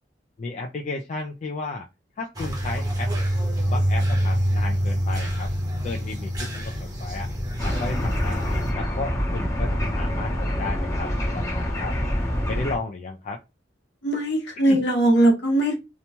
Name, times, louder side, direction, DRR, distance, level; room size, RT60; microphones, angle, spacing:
voice 1, 0.4-1.9 2.2-3.1 3.7-5.5 5.8-7.3 7.6-12.0 12.5-13.4 14.6-14.8, left 3 dB, 40° left, 2 dB, 0.3 m, -33 dB
sound 1, 2.3-8.7, equal, 20° right, 0.8 m, -26 dB
sound 2, 7.6-12.8, equal, 15° left, 0.6 m, -26 dB
voice 2, 14.0-15.7, right 1 dB, 65° left, 1 dB, 1.0 m, -20 dB
2.9 x 2.2 x 2.7 m, 0.25 s
head